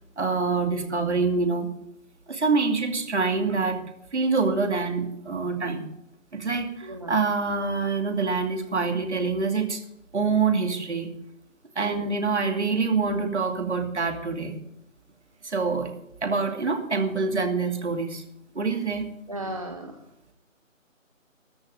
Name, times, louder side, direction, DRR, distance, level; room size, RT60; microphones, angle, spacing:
voice 1, 0.2-1.7 2.3-3.8 4.1-5.8 6.3-9.8 10.1-11.1 11.8-14.6 15.4-15.9 16.2-18.2 18.5-19.1, right 4 dB, 55° right, 5 dB, 2.6 m, -25 dB
voice 2, 6.8-7.2 11.8-12.2 19.3-19.9, right 1 dB, 25° right, 4 dB, 0.8 m, -34 dB
13.5 x 6.4 x 9.0 m, 0.78 s
figure-of-eight pair, 165°, 40 cm